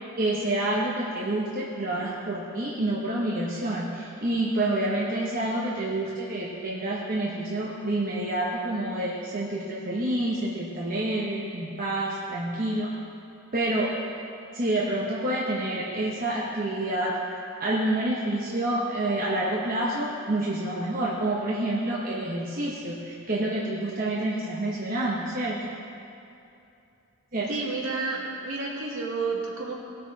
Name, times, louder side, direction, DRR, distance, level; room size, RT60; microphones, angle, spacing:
voice 1, 0.2-12.9 13.5-13.9 14.5-17.1 17.6-25.7 27.3-27.5, right 1 dB, 40° right, -5 dB, 1.1 m, -28 dB
voice 2, 27.5-29.8, right 4 dB, 70° right, -4 dB, 2.2 m, -30 dB
19.0 x 6.6 x 4.1 m, 2.7 s
head